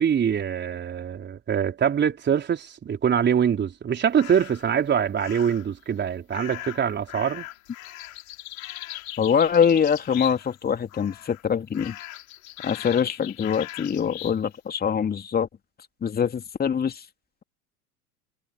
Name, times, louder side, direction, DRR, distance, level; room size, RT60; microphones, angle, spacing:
voice 1, 0.0-7.5, right 8 dB, 25° right, 4.3 m, -24 dB
sound 1, 4.1-4.7 5.2-5.7 6.3-10.6 10.9-11.4 11.7-14.4, left 15 dB, 60° left, 5.2 m, -40 dB
voice 2, 9.2-11.9 12.6-15.5 16.0-17.0, left 7 dB, 20° left, 2.7 m, -23 dB
figure-of-eight pair, 85°, 45 cm